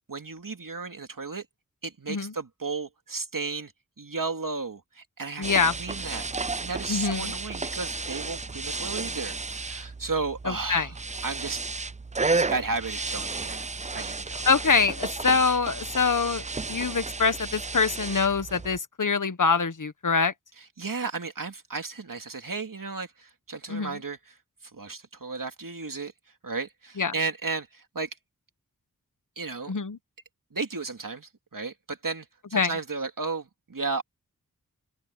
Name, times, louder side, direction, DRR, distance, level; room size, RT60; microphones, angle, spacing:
voice 1, 0.1-1.4 1.8-3.7 4.0-5.4 5.8-6.3 6.6-11.0 11.2-11.6 12.3-13.6 13.9-14.4 20.6-24.4 24.7-26.1 26.4-28.1 29.4-29.7 30.5-34.0, right 4 dB, 65° right, 2.7 m, -34 dB
voice 2, 5.4-5.7 6.9-7.3 10.5-10.9 14.4-20.3 23.7-24.0 27.0-27.1 29.7-30.0 32.5-32.7, left 5 dB, 60° left, 1.3 m, -24 dB
sound 1, 5.4-18.8, right 3 dB, 20° right, 0.4 m, -33 dB
open air
wide cardioid pair, 55°, 35 cm